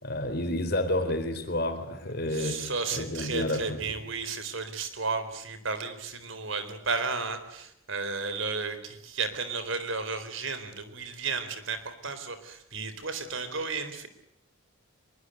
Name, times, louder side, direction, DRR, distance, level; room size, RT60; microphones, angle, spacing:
voice 1, 0.0-4.0, left 1 dB, 50° left, 4.1 m, -30 dB
voice 2, 2.3-14.1, right 4 dB, 70° right, 4.2 m, -33 dB
24.5 x 23.0 x 8.1 m
head